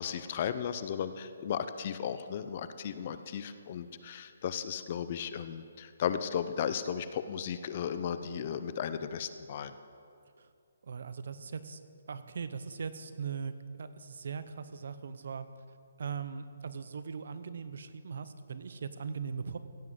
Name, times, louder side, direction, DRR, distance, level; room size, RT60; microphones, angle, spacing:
voice 1, 0.0-9.7, left 8 dB, 30° left, 11 dB, 0.5 m, -35 dB
voice 2, 10.8-11.8 12.1-15.5 16.0-19.6, right 6 dB, 55° right, 12 dB, 0.8 m, -40 dB
16.0 x 7.4 x 7.6 m, 2.4 s
hypercardioid pair, 170°, 0 cm